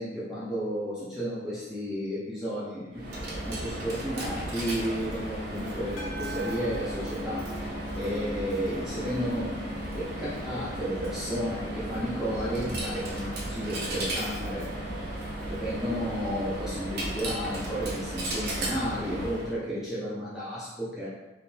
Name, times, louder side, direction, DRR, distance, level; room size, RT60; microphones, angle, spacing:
voice 1, 0.0-3.0 3.4-9.5 9.9-15.0 15.5-21.1, equal, 5° right, -10 dB, 0.7 m, -33 dB
Coin (dropping), 2.9-19.6, right 1 dB, 55° right, 0.8 m, -35 dB
sound 1, 6.0-8.4, right 2 dB, 70° left, 1.0 m, -44 dB
3.6 x 3.2 x 2.8 m, 1.1 s
head